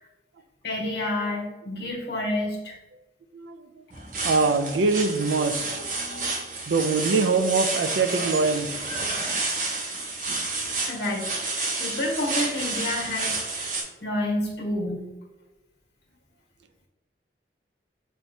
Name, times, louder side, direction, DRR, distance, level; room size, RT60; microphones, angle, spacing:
voice 1, 0.6-2.8 10.9-11.4 11.8-13.7 14.0-15.1, left 1 dB, 70° left, -1 dB, 1.3 m, -29 dB
voice 2, 3.3-3.8 4.2-6.3 6.7-8.8, right 4 dB, 85° right, 10 dB, 0.4 m, -24 dB
sound 1, 3.9-13.8, right 3 dB, 45° right, 0.8 m, -30 dB
6.1 x 3.0 x 2.7 m, 1.1 s
head